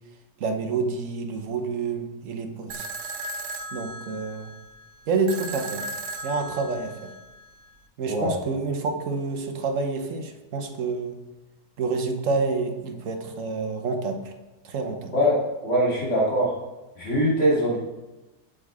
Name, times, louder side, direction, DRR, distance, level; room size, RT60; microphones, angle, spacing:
voice 1, 0.4-2.9 3.7-4.5 5.1-5.8 6.2-7.1 8.0-11.2 11.8-14.3 14.6-15.1, right 4 dB, 55° right, 5 dB, 1.2 m, -28 dB
sound 1, 2.7-7.7, right 2 dB, 75° right, 1.2 m, -37 dB
voice 2, 15.1-16.6 17.0-17.8, equal, 45° left, -5 dB, 2.8 m, -22 dB
8.5 x 6.8 x 3.5 m, 1.1 s
omnidirectional pair, 1.7 m